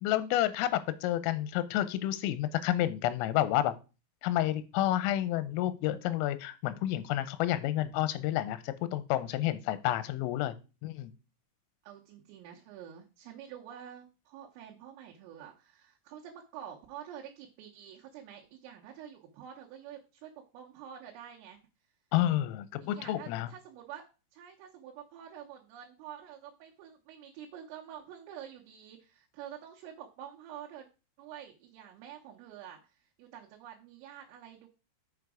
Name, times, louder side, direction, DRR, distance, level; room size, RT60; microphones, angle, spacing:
voice 1, 0.0-3.7 4.2-10.5 10.8-11.1 22.1-23.5, left 13 dB, 85° left, 14 dB, 3.3 m, -30 dB
voice 2, 11.8-21.6 22.9-24.1 24.3-30.9 31.2-34.7, right 9 dB, 85° right, -2 dB, 3.6 m, -48 dB
7.0 x 6.5 x 4.8 m, 0.32 s
omnidirectional pair, 5.8 m